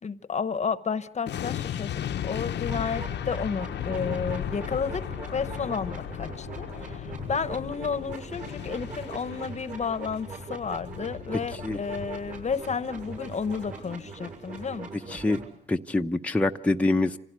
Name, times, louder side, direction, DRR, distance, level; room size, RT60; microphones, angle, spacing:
voice 1, 0.0-5.1 5.3-15.2, left 5 dB, 35° left, 1.0 m, -32 dB
sound 1, 1.3-14.4 14.7-14.9, left 10 dB, 60° left, 0.8 m, -36 dB
sound 2, 2.7-15.5, right 4 dB, 40° right, 6.6 m, -41 dB
voice 2, 15.7-17.2, left 2 dB, 5° left, 0.8 m, -25 dB
26.5 x 16.5 x 8.2 m
cardioid pair, 90°, 20 cm